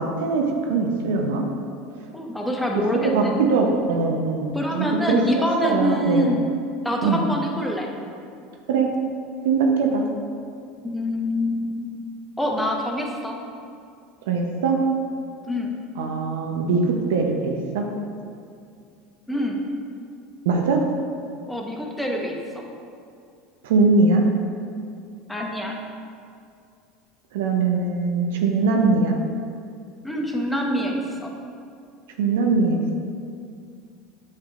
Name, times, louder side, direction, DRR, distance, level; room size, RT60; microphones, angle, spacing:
voice 1, 0.0-1.4 3.1-6.3 7.0-7.2 8.7-8.9 9.4-10.0 14.3-14.8 16.0-17.8 20.4-20.8 23.6-24.2 27.3-29.2 32.2-33.0, right 4 dB, 75° right, 2 dB, 0.7 m, -21 dB
voice 2, 2.1-3.3 4.5-6.5 6.8-7.9 10.8-11.9 12.4-13.3 15.4-15.7 19.3-19.6 21.5-22.7 25.3-25.7 30.0-31.3, equal, 5° left, 0 dB, 1.0 m, -25 dB
7.4 x 5.9 x 2.4 m, 2.4 s
hypercardioid pair, 80°, 0 cm